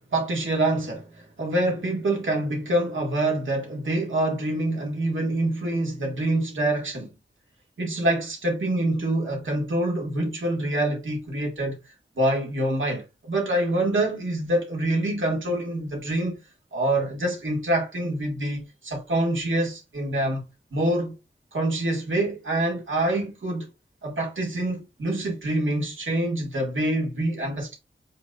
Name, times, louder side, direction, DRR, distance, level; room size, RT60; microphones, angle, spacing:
voice 1, 0.1-7.1 7.8-11.8 12.2-16.4 16.7-20.5 20.7-21.1 21.5-23.7 24.0-27.8, right 1 dB, 90° right, 1.8 m, -26 dB
7.6 x 2.8 x 2.5 m
wide cardioid pair, 60°, 20 cm